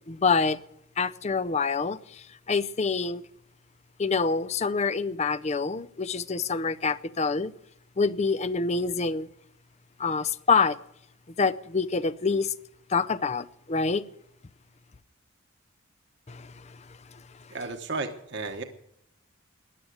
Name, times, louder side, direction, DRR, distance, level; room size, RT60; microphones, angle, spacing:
voice 1, 0.1-0.6 1.0-3.2 4.0-7.5 8.0-9.3 10.0-10.8 11.4-12.5 12.9-14.0 16.3-17.5, left 4 dB, 30° left, 18 dB, 0.5 m, -27 dB
voice 2, 17.5-18.6, right 3 dB, 55° right, 6 dB, 1.2 m, -33 dB
15.0 x 10.5 x 7.9 m, 0.77 s
head